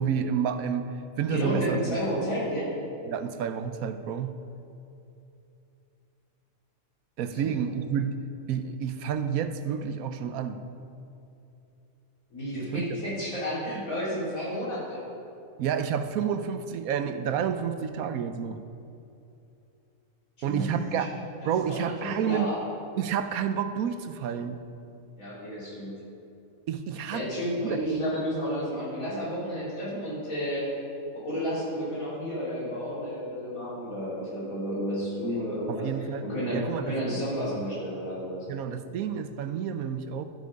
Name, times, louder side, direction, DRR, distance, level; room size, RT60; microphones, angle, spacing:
voice 1, 0.0-2.0 3.1-4.4 7.2-8.2 8.5-10.6 12.7-12.8 15.6-18.6 20.4-21.1 21.4-22.5 23.0-24.6 26.7-27.2 27.6-27.8 35.7-36.2 36.5-37.3 38.5-40.2, right 8 dB, 85° right, 9 dB, 1.1 m, -30 dB
voice 2, 1.3-2.7 7.3-7.8 12.3-15.0 20.4-21.1 21.4-22.6 25.2-26.0 27.1-30.7 31.1-35.9 36.2-38.5, equal, 75° left, -7 dB, 3.9 m, -31 dB
12.5 x 8.3 x 5.2 m, 2.7 s
omnidirectional pair, 1.5 m